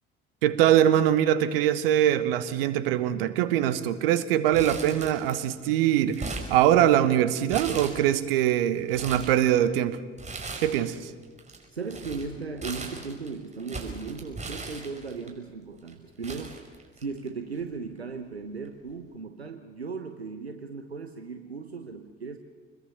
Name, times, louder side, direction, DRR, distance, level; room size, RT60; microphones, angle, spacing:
voice 1, 0.4-10.0 10.6-11.1, right 11 dB, 65° right, 14 dB, 1.2 m, -23 dB
Crumpling crinkling, 4.5-5.5 5.8-7.1 7.5-8.3 8.7-9.4 10.2-11.0 11.2-15.3 15.9-16.0 16.2-17.3 17.6-17.7 18.6-18.9, right 3 dB, 20° right, 5.0 m, -38 dB
voice 2, 11.7-16.6 17.0-22.4, right 4 dB, 85° right, 7 dB, 0.9 m, -37 dB
27.0 x 21.5 x 6.9 m, 1.4 s
figure-of-eight pair, 50°, 31 cm